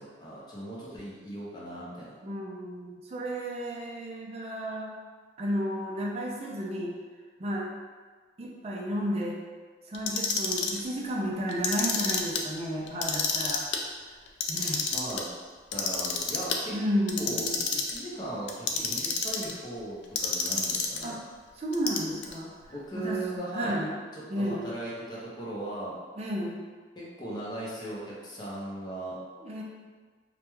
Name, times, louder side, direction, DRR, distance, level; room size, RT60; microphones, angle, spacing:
voice 1, 0.0-2.2 14.6-15.3 15.7-16.7 17.2-21.2 22.7-23.8 24.1-25.9 27.0-29.2, right 1 dB, 25° left, -6 dB, 0.6 m, -38 dB
voice 2, 2.2-4.9 5.4-6.9 7.4-7.7 8.4-9.4 9.9-13.7 14.5-14.8 16.7-17.6 21.0-21.2 21.6-23.2 23.5-24.0 24.3-24.7 26.2-26.6 29.4-29.6, equal, 35° right, -2 dB, 0.4 m, -32 dB
Clock, 9.9-10.8 11.5-12.4 12.9-13.8 14.3-15.2 15.7-16.6 17.1-18.0 18.5-19.5 20.2-21.1 21.7-22.3, left 5 dB, 85° left, 0.3 m, -29 dB
2.3 x 2.1 x 3.0 m, 1.5 s
head